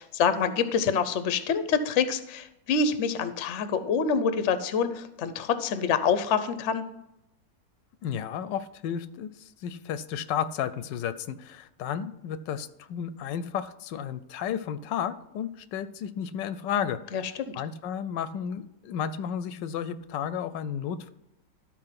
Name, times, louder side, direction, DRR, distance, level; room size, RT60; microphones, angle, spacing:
voice 1, 0.0-6.8 17.1-17.6, left 6 dB, 55° left, 11 dB, 0.9 m, -26 dB
voice 2, 8.0-9.3 9.6-17.3 17.5-21.1, left 8 dB, 90° left, 14 dB, 1.3 m, -32 dB
12.5 x 4.4 x 5.8 m, 0.86 s
omnidirectional pair, 1.9 m